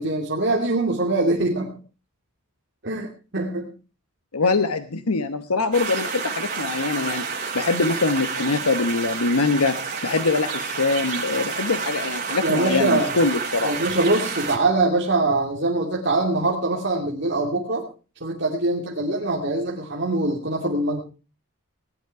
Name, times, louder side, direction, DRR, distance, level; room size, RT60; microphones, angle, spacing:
voice 1, 0.0-1.7 2.8-3.7 12.4-13.3 13.6-17.8 18.2-21.0, right 2 dB, 50° right, -2 dB, 2.6 m, -23 dB
voice 2, 4.3-7.3 7.5-9.8 10.0-13.7, left 3 dB, 85° left, 9 dB, 1.1 m, -23 dB
sound 1, 5.7-14.6, right 5 dB, 35° right, 4.2 m, -29 dB
19.0 x 11.0 x 4.7 m, 0.35 s
head